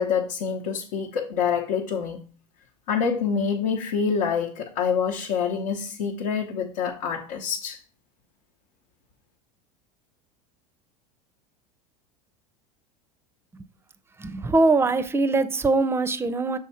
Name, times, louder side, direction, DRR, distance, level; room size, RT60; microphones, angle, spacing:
voice 1, 0.0-2.2 2.9-7.8, left 6 dB, 75° left, 0.9 m, -26 dB
voice 2, 14.2-16.6, right 3 dB, 15° right, 0.5 m, -22 dB
6.3 x 3.7 x 4.2 m
supercardioid pair, 105°, 19 cm